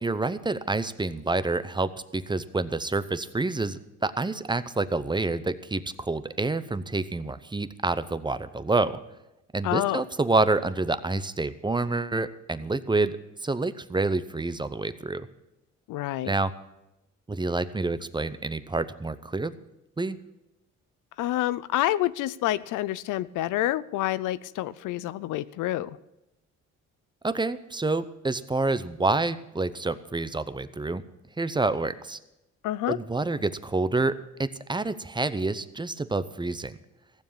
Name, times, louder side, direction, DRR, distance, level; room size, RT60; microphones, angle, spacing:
voice 1, 0.0-9.0 9.5-15.3 16.2-16.5 17.3-19.5 20.0-20.2 27.2-31.0 31.4-32.2 32.9-34.1 34.4-36.8, right 3 dB, 15° right, 13 dB, 0.7 m, -28 dB
voice 2, 9.6-10.0 15.9-16.3 21.2-26.0 32.6-33.0, left 14 dB, 90° left, 17 dB, 0.6 m, -28 dB
15.5 x 7.2 x 8.8 m, 0.92 s
cardioid pair, 90°, 30 cm